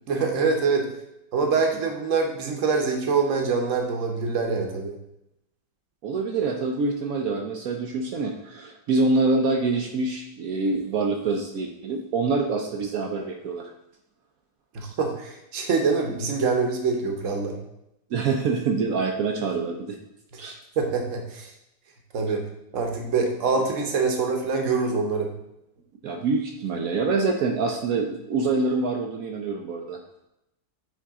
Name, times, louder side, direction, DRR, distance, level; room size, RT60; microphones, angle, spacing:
voice 1, 0.1-0.9 1.3-4.9 14.7-17.6 20.3-20.4 20.8-21.5 22.1-22.4 22.7-25.3, right 4 dB, 50° right, 3 dB, 1.1 m, -25 dB
voice 2, 6.0-13.7 18.1-20.0 20.4-20.6 26.0-30.0, right 3 dB, 70° right, 3 dB, 0.9 m, -25 dB
8.5 x 3.6 x 3.6 m, 0.85 s
omnidirectional pair, 2.0 m